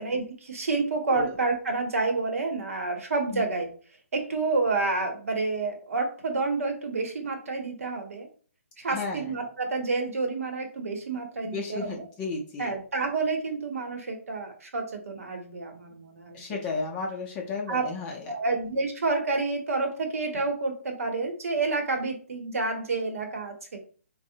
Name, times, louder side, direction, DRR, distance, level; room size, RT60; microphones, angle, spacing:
voice 1, 0.0-3.7 4.1-8.3 8.8-12.0 12.6-16.6 17.7-17.8 18.3-23.8, right 3 dB, 75° right, 3 dB, 0.8 m, -29 dB
voice 2, 8.9-9.3 11.4-12.7 16.3-18.3, left 4 dB, 15° left, -1 dB, 0.5 m, -33 dB
3.4 x 2.0 x 2.7 m, 0.41 s
hypercardioid pair, 155°, 8 cm